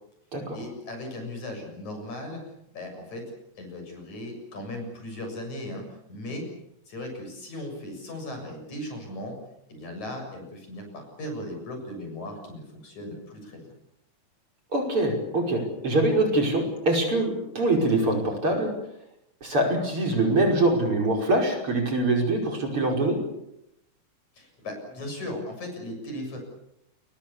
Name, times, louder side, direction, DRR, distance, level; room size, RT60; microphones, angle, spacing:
voice 1, 0.5-2.4 2.7-3.3 3.6-5.8 6.1-6.5 6.9-9.4 9.7-13.6 24.3-26.4, left 1 dB, 75° left, 4 dB, 8.5 m, -37 dB
voice 2, 14.7-18.7 19.4-23.2, right 2 dB, 45° right, 2 dB, 6.3 m, -24 dB
29.0 x 22.5 x 7.1 m, 0.82 s
omnidirectional pair, 3.3 m